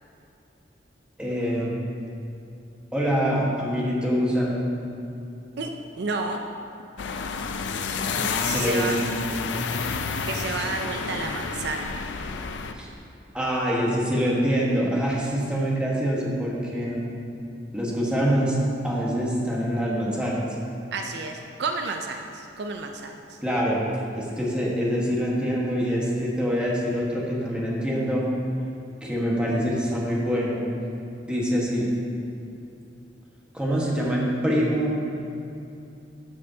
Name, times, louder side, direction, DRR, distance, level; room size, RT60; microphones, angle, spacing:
voice 1, 1.2-1.8 2.9-4.6 8.5-9.1 12.8-12.9 13.3-17.0 17.7-18.6 18.8-20.4 23.4-23.8 24.1-28.2 29.0-30.6 31.2-31.9 33.5-35.0, equal, 5° right, -5 dB, 1.4 m, -25 dB
voice 2, 6.0-6.4 8.4-9.0 9.3-9.4 10.3-11.9 20.9-23.4, right 4 dB, 65° right, 4 dB, 0.5 m, -31 dB
sound 1, 7.0-12.7, left 4 dB, 85° left, 0.5 m, -29 dB
12.5 x 6.3 x 2.8 m, 2.7 s
head